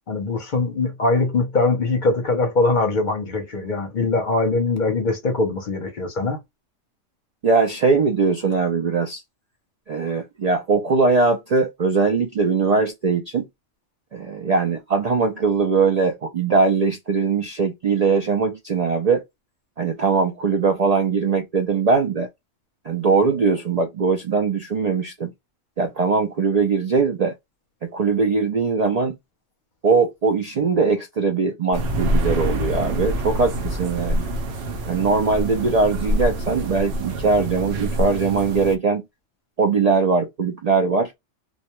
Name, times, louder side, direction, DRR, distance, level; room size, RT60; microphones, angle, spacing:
voice 1, 0.1-6.4, left 3 dB, 45° left, 0.7 m, -22 dB
voice 2, 7.4-9.2 9.9-13.5 14.1-19.2 19.8-22.3 22.8-25.3 25.8-27.3 27.8-29.2 29.8-34.3 34.9-39.0 39.6-41.1, right 4 dB, 90° right, 0.3 m, -21 dB
sound 1, 31.7-38.8, right 1 dB, 60° right, 0.8 m, -26 dB
2.3 x 2.2 x 2.9 m
omnidirectional pair, 1.3 m